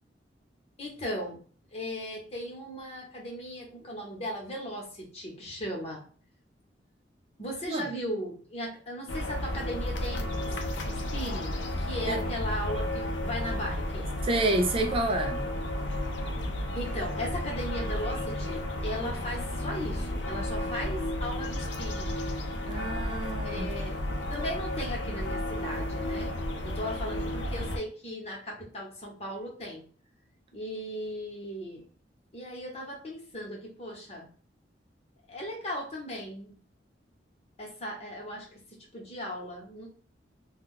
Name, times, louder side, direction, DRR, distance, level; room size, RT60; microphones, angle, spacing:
voice 1, 0.8-1.4 1.7-6.0 7.4-10.6 10.9-14.1 16.7-22.2 23.4-24.0 24.3-26.3 26.6-29.8 30.5-31.9 32.3-34.3 35.3-36.6 37.6-39.9, equal, 35° left, 1.0 m, -37 dB
sound 1, 9.1-27.8, left 1 dB, 80° left, 0.5 m, -32 dB
voice 2, 14.2-15.5 22.7-23.8, right 2 dB, 30° right, 0.3 m, -29 dB
2.3 x 2.2 x 3.7 m
head